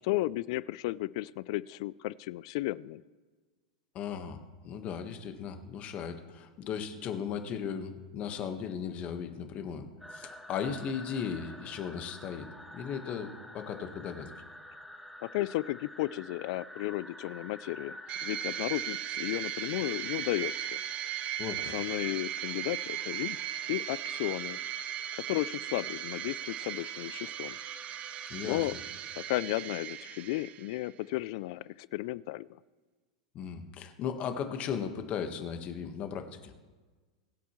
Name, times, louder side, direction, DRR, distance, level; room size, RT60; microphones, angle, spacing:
voice 1, 0.0-3.0 15.2-20.5 21.6-23.4 23.7-24.6 25.3-27.6 28.4-28.7 29.2-32.5, left 18 dB, 60° left, 21 dB, 0.4 m, -34 dB
voice 2, 3.9-4.4 4.6-9.8 10.1-14.3 21.4-21.7 28.3-28.7 33.3-36.5, left 7 dB, 40° left, 7 dB, 1.4 m, -37 dB
sound 1, 10.0-29.4, equal, ahead, 0.9 m, -49 dB
sound 2, 18.1-30.9, right 11 dB, 35° right, 0.6 m, -37 dB
22.5 x 8.3 x 3.2 m, 1.4 s
hypercardioid pair, 115°, 4 cm